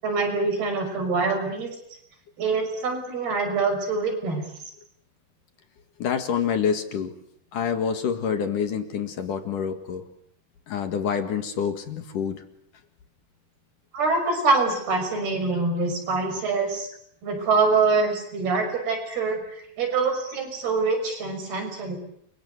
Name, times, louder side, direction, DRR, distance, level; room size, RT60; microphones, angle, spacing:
voice 1, 0.0-1.7 2.4-4.4 13.9-16.9 17.2-19.4 19.8-22.0, right 4 dB, 70° right, 6 dB, 8.0 m, -24 dB
voice 2, 6.0-7.1 7.5-10.1 10.7-12.4, left 7 dB, 60° left, 8 dB, 3.2 m, -27 dB
29.5 x 24.5 x 8.2 m, 0.69 s
omnidirectional pair, 4.6 m